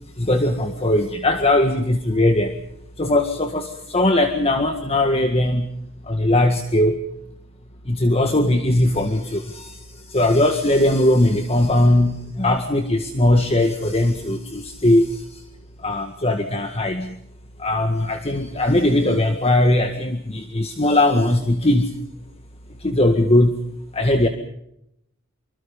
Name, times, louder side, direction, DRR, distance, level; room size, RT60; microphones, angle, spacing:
voice 1, 0.2-2.5 3.0-5.7 6.1-7.0 7.9-15.4 15.8-17.2 17.6-21.9 22.8-23.6 23.9-24.3, left 1 dB, 30° left, 6 dB, 1.8 m, -19 dB
26.5 x 25.0 x 5.4 m, 0.77 s
head